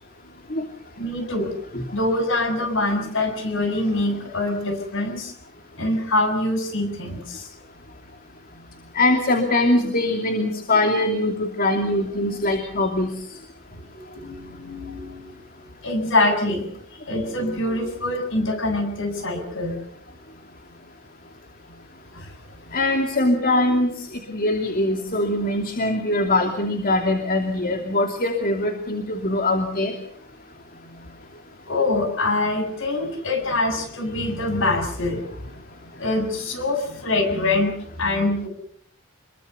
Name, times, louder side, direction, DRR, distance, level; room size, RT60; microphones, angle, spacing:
voice 1, 1.0-1.5 1.9-5.3 5.8-7.4 14.1-15.3 15.8-16.7 17.1-19.8 22.1-22.3 31.7-35.4 36.0-38.5, left 2 dB, 60° left, 6 dB, 7.3 m, -24 dB
voice 2, 8.9-13.1 22.7-29.9, left 2 dB, 40° left, 4 dB, 2.7 m, -22 dB
27.0 x 22.5 x 6.8 m, 0.67 s
head